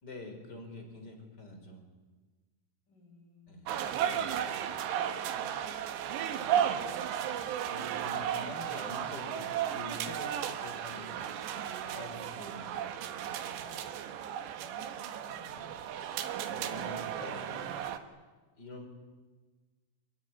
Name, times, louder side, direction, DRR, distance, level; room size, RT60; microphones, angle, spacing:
voice 1, 0.0-1.8 3.5-3.7 4.1-4.6 6.3-6.8 7.1-7.3 7.7-13.8 15.4-17.8 18.6-18.9, left 1 dB, 25° left, 5 dB, 4.8 m, -47 dB
voice 2, 2.9-3.6 4.2-4.4 5.1-5.4 14.7-15.6, left 3 dB, 50° left, 2 dB, 8.4 m, -56 dB
sound 1, 3.7-18.0, right 9 dB, 85° right, 3.7 m, -34 dB
27.0 x 22.5 x 9.7 m, 1.3 s
omnidirectional pair, 4.9 m